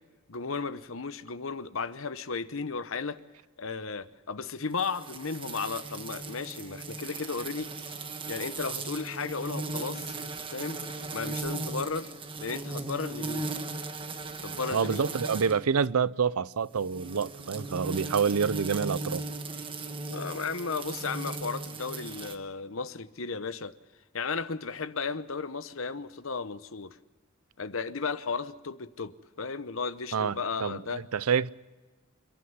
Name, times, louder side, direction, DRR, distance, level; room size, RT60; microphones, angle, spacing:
voice 1, 0.3-3.2 3.6-7.7 8.3-10.2 10.5-10.8 11.1-12.1 12.4-13.5 14.4-15.1 20.1-23.8 24.1-27.0 27.6-31.0, left 4 dB, 65° left, 0.9 m, -34 dB
sound 1, 4.8-15.6 16.7-22.3, right 3 dB, 25° right, 1.4 m, -37 dB
voice 2, 14.7-19.3 30.1-30.8 31.1-31.5, right 6 dB, 90° right, 0.6 m, -27 dB
27.5 x 11.5 x 9.6 m
head